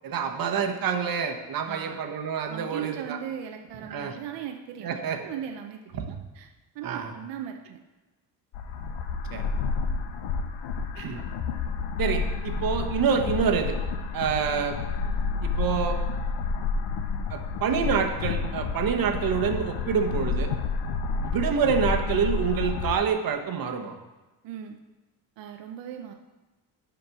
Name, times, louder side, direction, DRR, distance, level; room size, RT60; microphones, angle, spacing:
voice 1, 0.0-3.2 3.9-4.2 4.8-5.2 6.0-6.2 6.8-7.1 9.3-9.4 10.9-11.2 12.0-13.8 14.1-14.8 15.4-16.0 17.3-20.5 21.2-23.9, right 6 dB, 50° right, 4 dB, 1.1 m, -27 dB
voice 2, 1.7-2.0 2.5-4.9 5.2-6.5 6.7-7.8 14.4-14.9 24.4-24.8 25.4-26.1, right 9 dB, 75° right, 4 dB, 0.7 m, -38 dB
sound 1, 8.5-23.0, left 4 dB, 85° left, 0.8 m, -30 dB
6.9 x 5.1 x 5.9 m, 1.1 s
cardioid pair, 115°, 43 cm